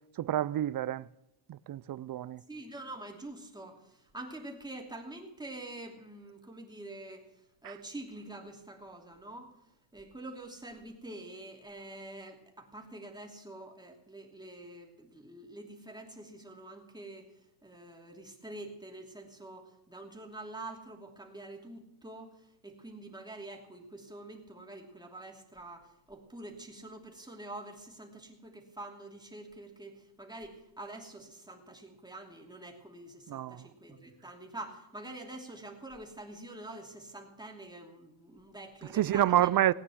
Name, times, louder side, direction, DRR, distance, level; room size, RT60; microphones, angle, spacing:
voice 1, 0.2-1.1 1.5-2.4 7.6-7.7 33.3-33.7 38.9-39.7, right 12 dB, 50° right, 0.5 m, -28 dB
voice 2, 2.5-39.5, right 2 dB, 10° right, 2.9 m, -46 dB
18.5 x 9.6 x 6.2 m
cardioid pair, 125°, 46 cm